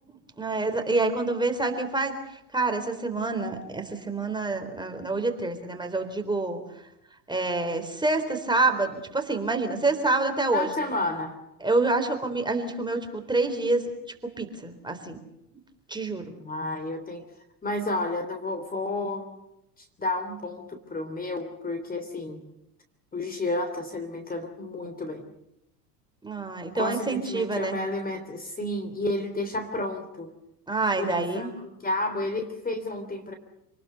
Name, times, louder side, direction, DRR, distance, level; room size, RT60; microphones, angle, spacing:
voice 1, 0.4-6.6 7.3-10.7 11.6-13.8 14.2-15.2 15.9-16.3 26.2-27.8 30.7-31.5, right 3 dB, 10° right, 5 dB, 3.9 m, -27 dB
voice 2, 10.5-11.4 16.4-17.2 17.6-19.4 19.8-22.4 23.1-25.3 26.7-30.3 31.0-33.3, left 2 dB, 15° left, 7 dB, 3.2 m, -31 dB
28.0 x 20.0 x 6.8 m, 0.86 s
hypercardioid pair, 100°, 49 cm